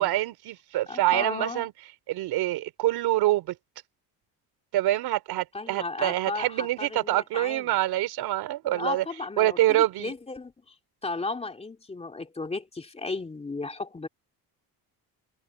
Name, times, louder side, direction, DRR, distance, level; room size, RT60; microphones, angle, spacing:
voice 1, 0.0-1.7 2.1-3.6 4.7-9.0 9.4-10.1, right 15 dB, 80° right, 3.5 m, -26 dB
voice 2, 0.9-1.7 5.5-7.7 8.6-10.7 11.0-14.1, left 3 dB, 15° left, 2.8 m, -35 dB
cardioid pair, 135°, 37 cm